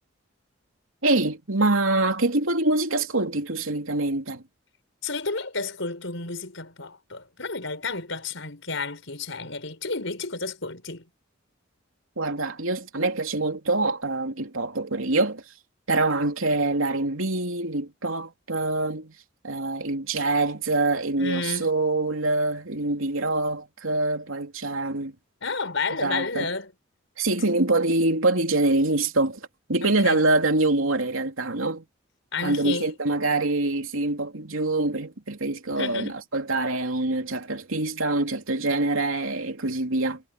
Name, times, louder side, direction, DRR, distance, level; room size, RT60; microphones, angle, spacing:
voice 1, 1.0-4.4 12.2-15.4 15.9-19.1 19.4-25.1 26.0-26.5 27.2-31.8 32.4-40.2, right 2 dB, 85° right, 3.2 m, -25 dB
voice 2, 5.0-11.1 21.2-21.7 25.4-26.7 29.8-30.2 32.3-32.9 35.8-36.2, left 4 dB, 70° left, 4.7 m, -31 dB
head